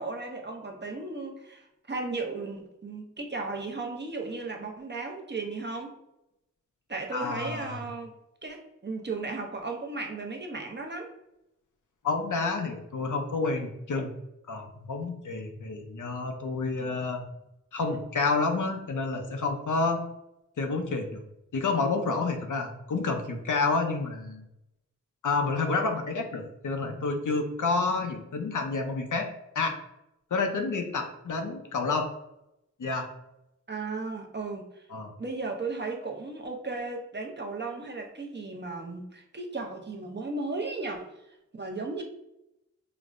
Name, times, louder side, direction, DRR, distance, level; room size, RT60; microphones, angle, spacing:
voice 1, 0.0-5.9 6.9-8.1 8.4-11.1 33.7-34.9 35.2-41.1 41.5-42.0, right 3 dB, 35° right, 1 dB, 0.6 m, -35 dB
voice 2, 7.1-7.8 12.0-14.1 14.5-17.3 17.7-20.0 20.6-21.2 21.5-24.4 25.2-29.3 29.6-29.8 30.3-32.1 32.8-33.1 34.9-35.1, left 3 dB, 80° left, 4 dB, 0.6 m, -29 dB
5.0 x 2.0 x 2.5 m, 0.88 s
wide cardioid pair, 55°, 30 cm